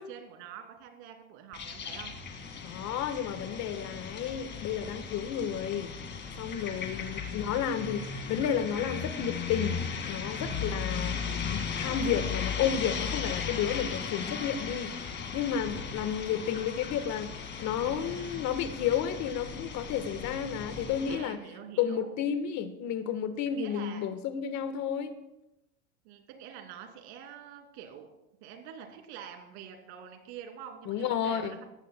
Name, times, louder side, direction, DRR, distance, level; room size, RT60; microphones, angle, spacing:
voice 1, 0.0-2.1 7.0-7.6 10.6-11.3 17.8-18.5 21.1-22.1 23.5-24.1 26.0-28.1 28.4-31.6, right 8 dB, 75° right, 4 dB, 2.8 m, -46 dB
sound 1, 1.5-21.2, left 6 dB, 35° left, 2.1 m, -37 dB
voice 2, 2.6-5.9 6.4-9.8 10.1-11.2 11.5-15.0 15.3-17.3 17.6-21.4 21.8-25.1 30.9-31.6, left 8 dB, 55° left, 10 dB, 1.4 m, -32 dB
18.5 x 14.5 x 2.2 m, 0.92 s
supercardioid pair, 115°, 34 cm